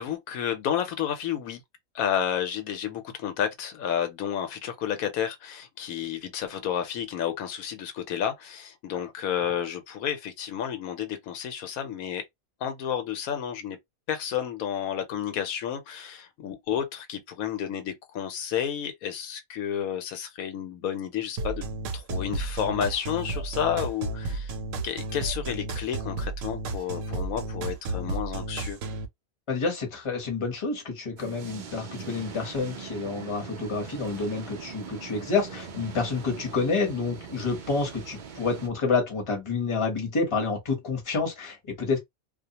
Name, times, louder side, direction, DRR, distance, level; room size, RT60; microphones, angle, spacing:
voice 1, 0.0-1.6 1.9-12.2 12.6-13.8 14.1-21.6 21.9-24.5 24.8-28.8, left 9 dB, 75° left, 1.0 m, -31 dB
sound 1, 21.4-29.1, right 2 dB, 70° right, 0.8 m, -32 dB
voice 2, 29.5-42.0, left 4 dB, 25° left, 0.8 m, -28 dB
sound 2, 31.2-38.7, right 6 dB, 85° right, 0.4 m, -41 dB
2.4 x 2.1 x 2.8 m
omnidirectional pair, 1.5 m